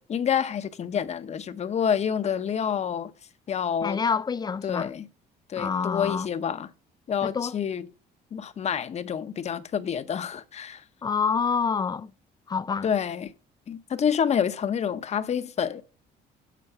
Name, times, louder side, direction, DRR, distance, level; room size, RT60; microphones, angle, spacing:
voice 1, 0.0-3.1 3.5-4.0 4.6-5.1 5.5-6.7 7.1-7.9 8.3-10.8 12.8-13.3 13.7-15.8, left 8 dB, 40° left, 0.8 m, -28 dB
voice 2, 3.8-4.9 5.6-6.3 7.2-7.6 11.0-12.1 12.5-12.9, left 6 dB, 25° left, 0.4 m, -27 dB
8.4 x 4.5 x 6.7 m
cardioid pair, 110°, 17 cm